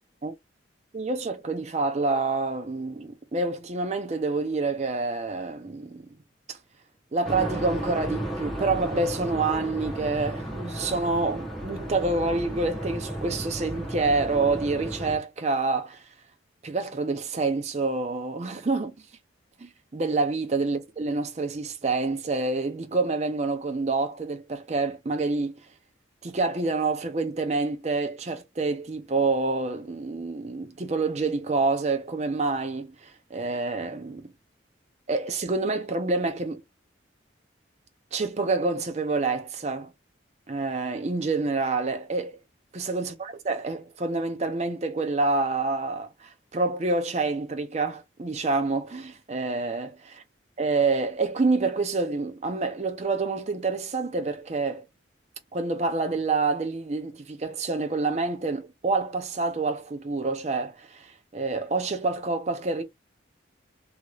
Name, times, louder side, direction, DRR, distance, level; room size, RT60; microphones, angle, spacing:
voice 1, 0.9-6.1 6.5-6.6 7.1-16.1 16.6-18.9 19.6-25.7 26.2-34.3 35.1-36.6 38.1-39.9 40.5-42.4 42.7-50.2 50.6-54.9 55.5-62.8, right 3 dB, 35° right, 0.5 m, -27 dB
sound 1, 7.2-15.2, right 1 dB, ahead, 0.8 m, -34 dB
2.9 x 2.8 x 2.3 m
head